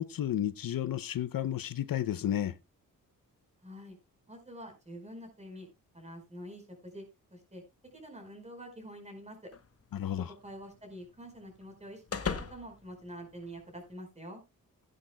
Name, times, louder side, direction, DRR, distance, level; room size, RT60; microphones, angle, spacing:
voice 1, 0.0-2.5 9.9-10.3, left 11 dB, 70° left, 0.7 m, -32 dB
voice 2, 3.6-4.0 4.3-5.7 5.9-7.0 7.3-7.6 7.9-9.5 10.4-14.4, equal, 20° right, 4.9 m, -46 dB
sound 1, 9.5-13.9, left 6 dB, 40° left, 1.1 m, -42 dB
16.0 x 10.0 x 2.3 m
cardioid pair, 95°, 35 cm